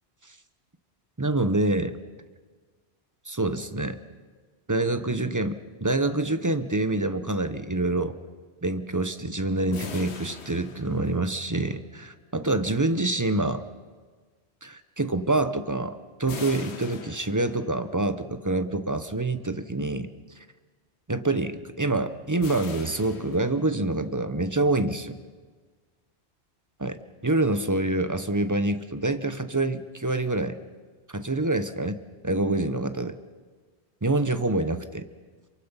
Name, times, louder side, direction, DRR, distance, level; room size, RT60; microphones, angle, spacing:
voice 1, 1.2-2.0 3.3-4.0 4.7-8.2 8.6-13.6 14.6-20.1 21.1-25.2 26.8-30.6 31.1-33.2 34.0-35.1, right 2 dB, 20° right, 11 dB, 0.8 m, -26 dB
sound 1, 9.7-11.6 16.3-17.9 22.4-24.0, left 5 dB, 75° left, 1.4 m, -41 dB
27.0 x 23.5 x 5.6 m, 1.4 s
omnidirectional pair, 1.1 m